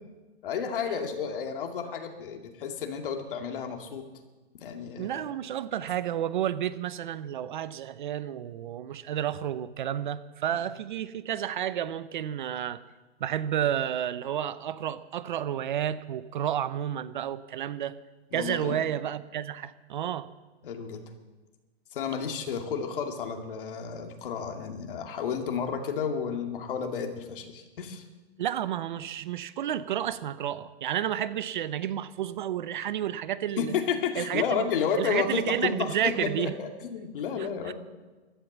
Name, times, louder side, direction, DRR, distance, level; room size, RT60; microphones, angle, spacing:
voice 1, 0.4-4.0 4.6-5.2 10.5-10.6 18.3-18.8 20.6-21.0 21.9-28.0 33.6-37.7, left 6 dB, 55° left, 4 dB, 2.4 m, -31 dB
voice 2, 5.0-12.8 13.2-18.0 18.3-20.3 28.4-33.7 34.2-36.5 37.4-37.7, right 10 dB, 45° right, 15 dB, 0.7 m, -31 dB
15.5 x 12.5 x 7.4 m, 1.2 s
hypercardioid pair, 165°, 33 cm